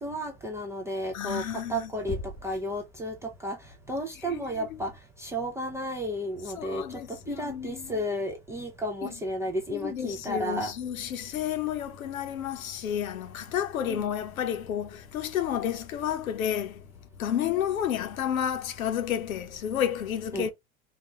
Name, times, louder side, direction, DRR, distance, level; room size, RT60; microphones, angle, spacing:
voice 1, 0.0-2.2 2.4-3.6 3.9-4.9 5.2-10.7 13.9-14.0 20.3-20.5, equal, 5° right, 0.3 m, -33 dB
voice 2, 1.1-1.9 4.2-4.8 6.6-8.0 9.0-9.1 9.7-16.8 17.2-20.5, left 9 dB, 70° left, 0.9 m, -31 dB
Knock, 2.1-2.7, left 3 dB, 10° left, 1.1 m, -37 dB
4.1 x 2.3 x 3.0 m
figure-of-eight pair, 85°, 43 cm